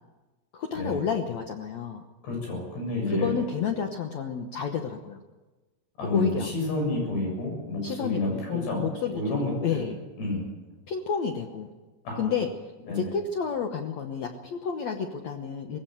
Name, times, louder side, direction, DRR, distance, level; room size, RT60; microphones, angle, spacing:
voice 1, 0.5-2.0 3.1-5.2 6.0-6.5 7.8-10.0 10.9-11.7 12.2-12.5 12.9-15.8, left 6 dB, 85° left, 5 dB, 1.5 m, -30 dB
voice 2, 2.2-3.3 6.0-8.8 9.1-9.8 10.2-10.4 12.0-12.3 12.9-13.1, left 2 dB, 70° left, 1 dB, 9.5 m, -29 dB
19.5 x 17.0 x 9.2 m, 1.2 s
omnidirectional pair, 5.0 m